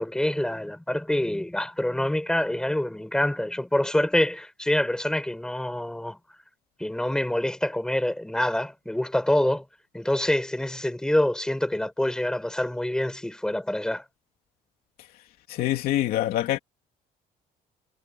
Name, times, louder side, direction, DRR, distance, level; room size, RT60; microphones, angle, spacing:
voice 1, 0.0-6.2 6.8-9.6 9.9-14.0, left 1 dB, 5° left, 7.6 m, -26 dB
voice 2, 15.5-16.6, left 14 dB, 80° left, 2.7 m, -25 dB
cardioid pair, 140°, 15 cm